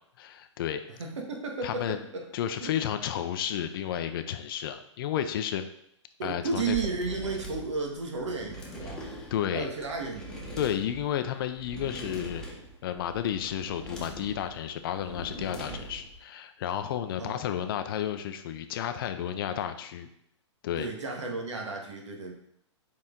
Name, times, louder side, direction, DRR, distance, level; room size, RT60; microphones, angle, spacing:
voice 1, 0.2-0.8 1.6-2.0 2.3-5.7 6.2-6.8 8.8-9.0 9.3-9.7 10.6-12.4 12.8-20.1 20.6-20.9, left 10 dB, 50° left, 9 dB, 0.6 m, -32 dB
voice 2, 1.0-2.3 2.6-2.7 6.2-9.0 9.5-10.4 15.7-15.8 17.2-17.4 20.8-22.3, right 4 dB, 75° right, 1 dB, 1.5 m, -33 dB
sound 1, 6.6-16.2, right 1 dB, 5° left, 1.2 m, -42 dB
6.3 x 4.2 x 3.8 m, 0.72 s
hypercardioid pair, 130°, 16 cm